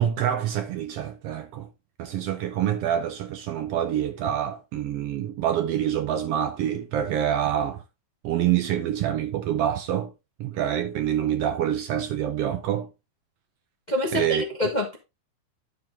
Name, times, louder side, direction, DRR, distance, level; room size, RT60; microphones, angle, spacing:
voice 1, 0.0-1.7 2.0-7.8 8.2-10.1 10.4-12.9 14.1-14.4, right 10 dB, 75° right, 1.5 m, -26 dB
voice 2, 13.9-15.0, left 1 dB, 80° left, 0.4 m, -26 dB
10.5 x 5.1 x 3.6 m
omnidirectional pair, 3.4 m